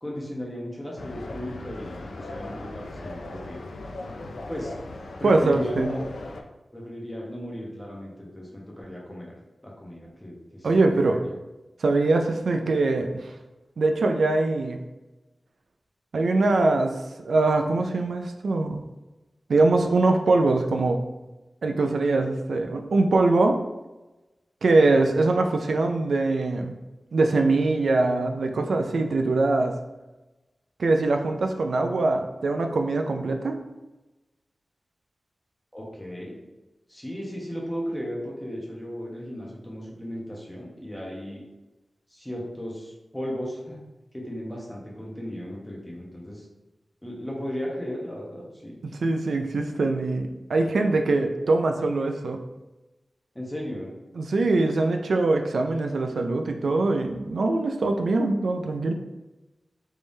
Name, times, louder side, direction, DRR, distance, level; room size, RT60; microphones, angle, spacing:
voice 1, 0.0-3.6 4.5-4.7 5.2-6.0 6.7-9.3 9.6-11.3 35.7-36.4 36.9-41.4 42.1-43.8 44.1-46.4 47.0-48.8 53.3-53.9, equal, 10° left, -3 dB, 0.9 m, -35 dB
sound 1, 1.0-6.4, left 2 dB, 90° left, 0.3 m, -38 dB
voice 2, 5.2-5.9 10.6-11.2 11.8-13.3 13.8-14.8 16.1-17.0 17.3-18.8 19.5-21.0 21.6-23.6 24.6-26.7 27.1-29.7 30.8-33.6 48.8-52.4 54.2-58.9, right 2 dB, 85° right, 4 dB, 0.3 m, -23 dB
3.5 x 3.2 x 2.6 m, 1.0 s
wide cardioid pair, 100°, 0 cm